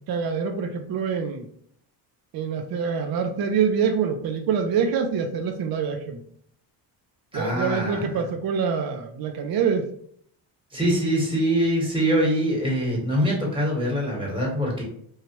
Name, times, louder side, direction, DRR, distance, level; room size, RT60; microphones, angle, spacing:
voice 1, 0.1-1.5 2.3-6.2 7.3-9.9, right 6 dB, 50° right, 5 dB, 0.5 m, -25 dB
voice 2, 7.3-8.1 10.7-14.8, equal, 10° right, -3 dB, 1.3 m, -24 dB
3.1 x 2.4 x 2.8 m, 0.64 s
cardioid pair, 100°, 49 cm